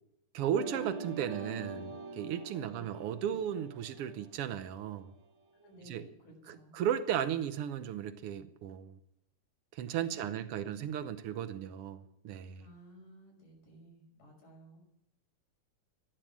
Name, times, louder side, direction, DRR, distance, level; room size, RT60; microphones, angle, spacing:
voice 1, 0.3-5.1 5.9-6.0 6.5-9.0 9.7-12.7, right 9 dB, 85° right, 10 dB, 1.2 m, -35 dB
sound 1, 0.5-5.2, right 4 dB, 50° right, 2.9 m, -45 dB
voice 2, 2.6-2.9 5.5-6.7 12.6-14.8, equal, 80° left, 0 dB, 7.1 m, -55 dB
15.0 x 11.5 x 7.4 m, 0.79 s
omnidirectional pair, 3.8 m